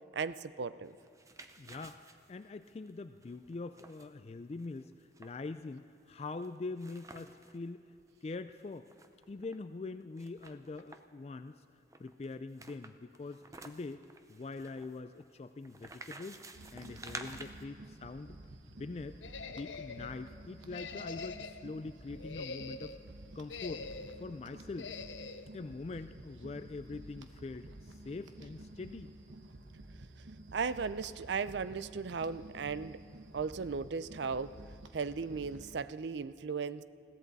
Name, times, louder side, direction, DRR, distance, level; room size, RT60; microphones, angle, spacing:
voice 1, 0.1-1.0 30.5-33.0 33.3-34.6 34.9-36.8, right 5 dB, 70° right, 15 dB, 0.5 m, -36 dB
sound 1, 0.9-7.6 8.0-8.1 8.3-9.6 10.2-11.2 11.9-17.6, right 3 dB, 15° right, 0.6 m, -51 dB
voice 2, 1.6-2.0 2.3-7.9 8.2-8.9 9.3-11.6 12.0-14.0 14.3-16.4 16.7-18.4 18.7-19.2 19.5-23.0 23.3-23.9 24.2-24.9 25.5-29.1, left 3 dB, 35° left, 10 dB, 0.3 m, -43 dB
sound 2, 16.5-35.8, right 1 dB, 90° right, 1.0 m, -52 dB
sound 3, 19.2-20.1 20.7-21.7 22.1-23.0 23.5-24.2 24.8-25.5, left 4 dB, 85° left, 0.7 m, -44 dB
21.5 x 15.5 x 4.1 m, 2.7 s
head